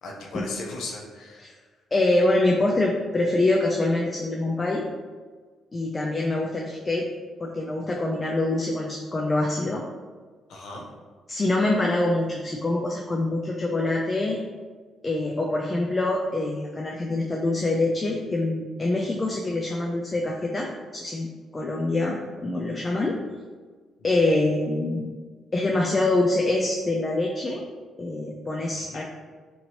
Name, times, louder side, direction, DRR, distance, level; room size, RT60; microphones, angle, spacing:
voice 1, 0.0-1.6 10.5-10.9 24.0-24.1 28.8-29.0, left 2 dB, 75° left, 0 dB, 0.6 m, -37 dB
voice 2, 1.9-4.9 5.7-7.1 7.4-9.8 11.3-14.4 15.0-23.2 24.0-25.1 25.5-27.6 28.0-29.0, left 2 dB, 25° left, -1 dB, 0.3 m, -25 dB
2.9 x 2.7 x 2.8 m, 1.5 s
cardioid pair, 90°, 0 cm